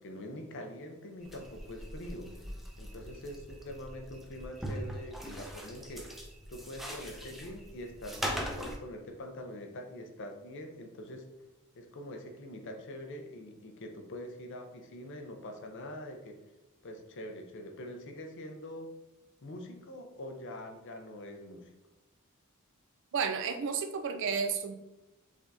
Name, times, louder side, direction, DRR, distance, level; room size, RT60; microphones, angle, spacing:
voice 1, 0.0-2.4 2.8-6.2 6.5-11.3 11.7-16.5 16.8-18.9 19.4-21.7, left 1 dB, 60° left, 4 dB, 0.6 m, -44 dB
sound 1, 1.2-8.8, equal, ahead, 0.5 m, -41 dB
voice 2, 23.1-24.7, right 6 dB, 60° right, 8 dB, 0.4 m, -32 dB
4.9 x 3.5 x 2.7 m, 1.0 s
head